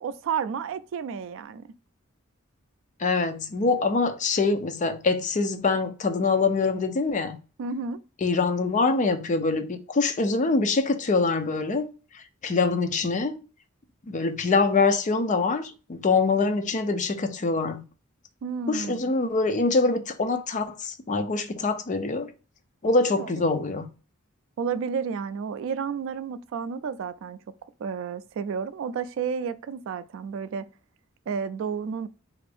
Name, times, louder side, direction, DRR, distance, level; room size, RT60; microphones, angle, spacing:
voice 1, 0.0-1.7 7.6-8.0 18.4-19.1 23.2-23.3 24.6-27.4 27.8-30.7 31.3-32.1, right 6 dB, 65° right, 0.3 m, -31 dB
voice 2, 3.0-7.4 8.2-11.9 12.4-13.4 14.0-17.8 18.7-22.3 22.8-23.9, left 3 dB, 35° left, 0.5 m, -24 dB
3.4 x 2.5 x 3.4 m
head